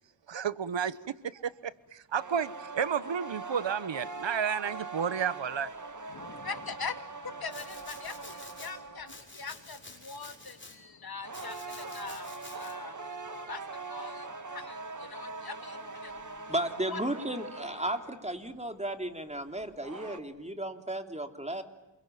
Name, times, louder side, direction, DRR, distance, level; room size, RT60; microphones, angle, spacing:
voice 1, 0.3-5.7, right 7 dB, 80° right, 1.1 m, -32 dB
sound 1, 2.1-9.3 11.2-18.3 19.6-20.2, right 3 dB, 40° right, 2.2 m, -42 dB
voice 2, 6.1-16.5 16.9-17.0, left 5 dB, 55° left, 2.4 m, -43 dB
Domestic sounds home sounds, 7.5-8.7 9.1-10.8 11.3-12.7, left 2 dB, 25° left, 6.8 m, -49 dB
voice 3, 16.5-21.6, right 1 dB, 15° right, 3.0 m, -34 dB
28.5 x 22.5 x 9.3 m
wide cardioid pair, 70°, 44 cm